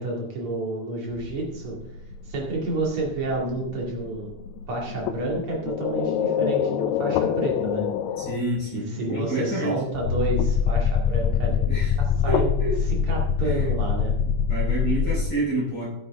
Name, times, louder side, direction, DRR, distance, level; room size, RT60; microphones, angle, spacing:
voice 1, 0.0-1.8 2.2-4.3 4.7-7.9 8.7-11.7 12.0-12.5 13.1-14.1, right 2 dB, 35° right, -2 dB, 2.7 m, -29 dB
sound 1, 1.1-8.5 9.9-15.2, left 7 dB, 85° left, 3.0 m, -25 dB
voice 2, 8.2-9.7 11.7-12.0 12.3-12.7 13.4-13.7 14.5-15.9, right 1 dB, 25° left, -6 dB, 5.2 m, -28 dB
14.5 x 7.9 x 3.6 m, 0.85 s
omnidirectional pair, 5.1 m